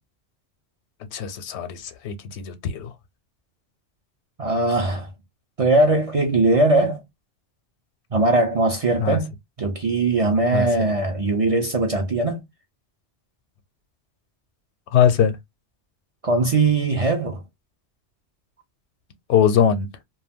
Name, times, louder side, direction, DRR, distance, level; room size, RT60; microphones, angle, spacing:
voice 1, 1.1-2.9 9.0-9.2 10.5-10.7 14.9-15.4 19.3-19.9, left 8 dB, 85° left, 0.9 m, -21 dB
voice 2, 4.4-5.1 5.6-7.0 8.1-9.3 9.6-12.4 16.2-17.4, right 2 dB, 50° right, 0.4 m, -20 dB
2.2 x 2.2 x 3.4 m
omnidirectional pair, 1.1 m